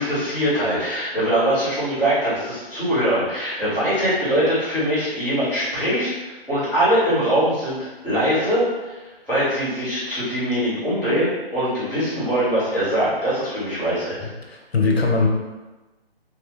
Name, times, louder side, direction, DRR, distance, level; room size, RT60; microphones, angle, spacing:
voice 1, 0.0-9.0 9.3-14.2, equal, ahead, -30 dB, 0.4 m, -22 dB
voice 2, 14.2-15.3, left 4 dB, 85° left, 0 dB, 0.7 m, -21 dB
2.3 x 2.2 x 3.0 m, 1.2 s
figure-of-eight pair, 145°, 30 cm